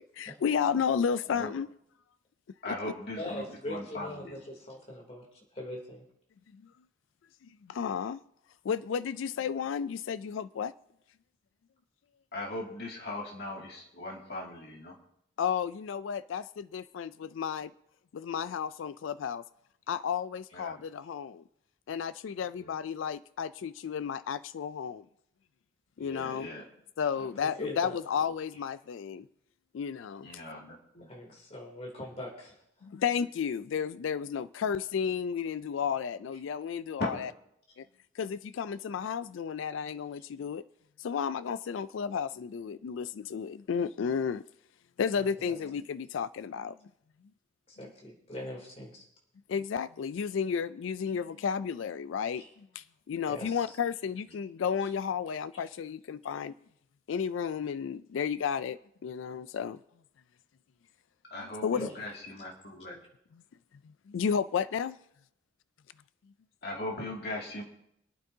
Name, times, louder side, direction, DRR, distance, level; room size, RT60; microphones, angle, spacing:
voice 1, 0.2-1.7 2.7-2.8 6.5-6.6 7.4-8.2 8.6-10.7 15.4-17.7 18.1-19.4 19.9-21.4 21.9-25.1 26.0-26.5 27.0-29.3 29.7-30.3 32.8-37.3 37.8-37.9 38.2-40.6 41.0-44.4 45.0-46.8 49.5-56.5 57.1-59.8 61.6-61.9 63.8-65.0, left 7 dB, 80° left, 0.4 m, -32 dB
voice 2, 2.6-4.4 12.3-15.0 20.5-20.8 22.6-22.8 26.0-26.7 28.2-28.3 30.2-31.1 37.0-37.1 61.3-63.0 66.6-67.6, left 1 dB, 55° left, 2.3 m, -39 dB
voice 3, 3.2-6.0 27.2-28.0 31.1-32.5 45.2-45.3 47.7-49.1 52.3-52.5 53.3-53.6 54.8-54.9 61.8-61.9, left 1 dB, 30° left, 2.9 m, -41 dB
26.5 x 9.1 x 2.7 m
head